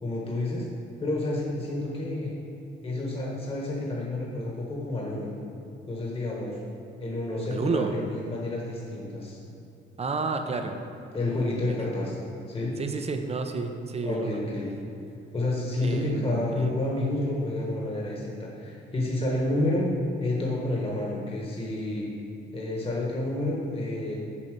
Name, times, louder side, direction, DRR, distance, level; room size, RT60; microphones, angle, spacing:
voice 1, 0.0-0.6 1.0-2.3 2.8-5.3 5.9-6.6 7.0-9.4 11.1-12.2 12.5-12.8 14.0-14.7 15.3-19.9 20.2-22.1 22.5-24.2, left 2 dB, 30° left, -3 dB, 1.4 m, -29 dB
voice 2, 7.5-7.9 10.0-10.8 11.7-11.8 12.8-14.4 15.8-16.7, right 4 dB, 30° right, 6 dB, 0.7 m, -30 dB
7.2 x 4.1 x 6.6 m, 2.7 s
cardioid pair, 90°, 20 cm